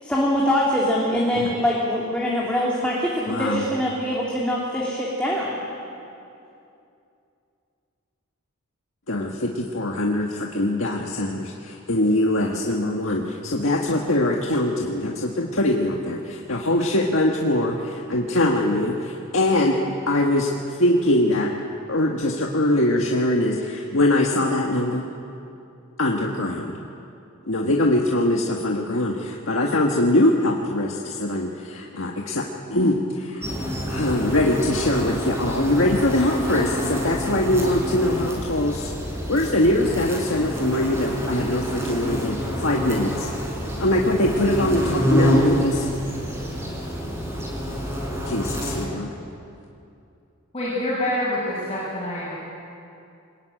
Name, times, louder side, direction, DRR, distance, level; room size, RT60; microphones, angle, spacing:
voice 1, 0.0-5.7, left 1 dB, 5° left, -5 dB, 3.0 m, -23 dB
voice 2, 3.3-3.6 9.1-21.5 21.9-25.1 26.0-26.7 27.5-33.5 33.9-38.9 39.3-43.3 43.8-45.9 48.3-49.1, left 1 dB, 70° left, -1 dB, 1.7 m, -22 dB
sound 1, 33.4-48.9, equal, 10° right, 4.6 m, -27 dB
voice 3, 50.5-52.3, left 1 dB, 25° left, -9 dB, 6.4 m, -26 dB
24.5 x 20.5 x 9.1 m, 2.6 s
head